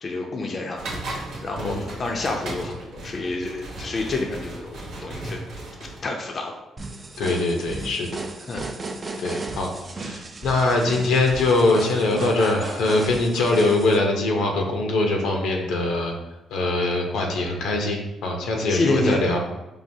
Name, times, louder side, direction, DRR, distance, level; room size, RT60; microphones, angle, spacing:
voice 1, 0.0-5.4 5.8-6.6 8.5-8.7 9.1-9.6 18.7-19.2, left 3 dB, 45° left, 1 dB, 0.5 m, -29 dB
sound 1, 0.8-6.0, right 2 dB, 75° right, 0.9 m, -36 dB
voice 2, 1.6-1.9 7.2-8.2 9.2-9.7 10.0-16.1 16.5-19.4, left 2 dB, 85° left, 1 dB, 0.7 m, -22 dB
sound 2, 6.8-14.0, right 3 dB, 35° right, 0.4 m, -35 dB
4.8 x 2.5 x 2.7 m, 0.98 s
cardioid pair, 80°, 0 cm